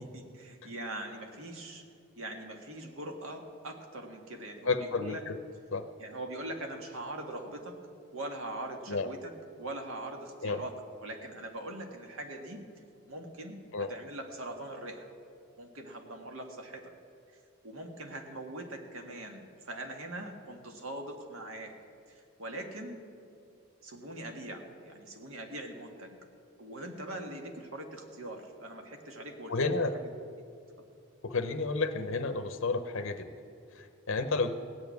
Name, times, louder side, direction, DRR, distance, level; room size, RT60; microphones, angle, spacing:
voice 1, 0.0-1.8 2.2-5.2 6.0-7.7 8.1-9.3 9.6-10.7 11.0-12.6 13.1-15.1 15.6-16.9 17.3-21.7 22.1-23.0 23.8-26.2 26.6-29.7 29.9-30.1 30.8-30.9, right 1 dB, 70° right, 4 dB, 1.7 m, -42 dB
voice 2, 4.7-5.4 5.7-5.9 8.9-9.1 10.4-10.6 13.7-13.9 29.5-30.0 31.2-33.3 33.7-34.5, left 3 dB, 60° left, 7 dB, 0.7 m, -31 dB
17.0 x 7.0 x 9.4 m, 2.4 s
head